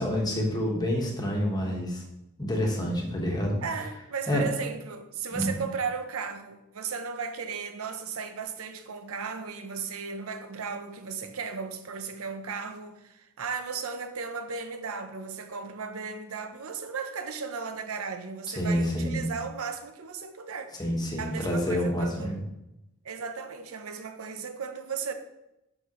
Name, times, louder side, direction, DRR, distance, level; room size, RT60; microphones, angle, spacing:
voice 1, 0.0-2.0 2.4-3.6 4.3-4.5 5.3-5.6 18.5-19.2 20.8-22.4, equal, 20° left, 1.4 m, -28 dB
voice 2, 3.6-20.7 21.2-22.3 23.0-25.1, right 5 dB, 70° right, 0.7 m, -35 dB
7.3 x 6.5 x 3.1 m
head